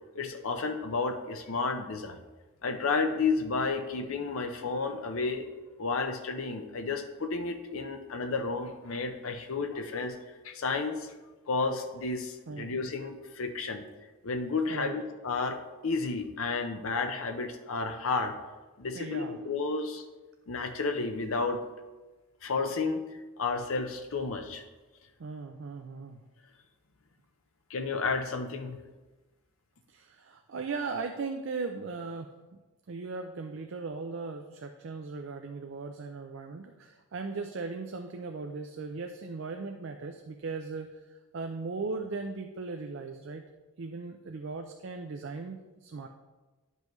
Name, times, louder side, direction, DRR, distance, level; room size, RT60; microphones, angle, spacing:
voice 1, 0.1-2.2 2.6-5.5 5.8-11.1 11.5-13.8 14.2-18.3 18.8-20.0 20.5-21.6 22.4-23.0 23.4-24.6 27.7-28.8, left 4 dB, 70° left, 6 dB, 0.6 m, -32 dB
voice 2, 18.9-19.4 25.2-26.2 29.9-32.3 32.9-43.5 43.8-46.1, right 4 dB, 60° right, 5 dB, 0.4 m, -38 dB
10.5 x 5.4 x 3.1 m, 1.2 s
head